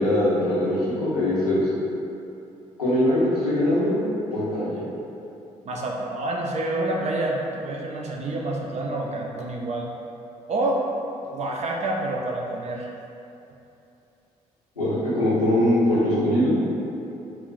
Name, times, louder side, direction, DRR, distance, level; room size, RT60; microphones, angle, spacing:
voice 1, 0.0-1.6 2.8-4.0 4.3-4.7 14.8-16.5, left 1 dB, 90° left, -11 dB, 0.6 m, -21 dB
voice 2, 5.6-9.9 10.5-10.8 11.3-12.9, right 2 dB, 35° right, -1 dB, 0.4 m, -28 dB
2.3 x 2.0 x 3.7 m, 2.8 s
figure-of-eight pair, 40°, 19 cm